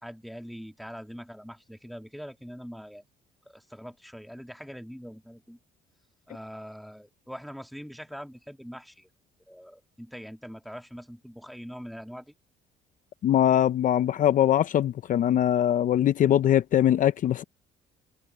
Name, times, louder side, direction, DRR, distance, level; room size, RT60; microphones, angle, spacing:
voice 1, 0.0-3.0 3.5-5.6 6.3-9.1 9.5-12.4, equal, ahead, 2.6 m, -43 dB
voice 2, 13.2-17.4, left 11 dB, 50° left, 0.7 m, -22 dB
cardioid pair, 110°, 17 cm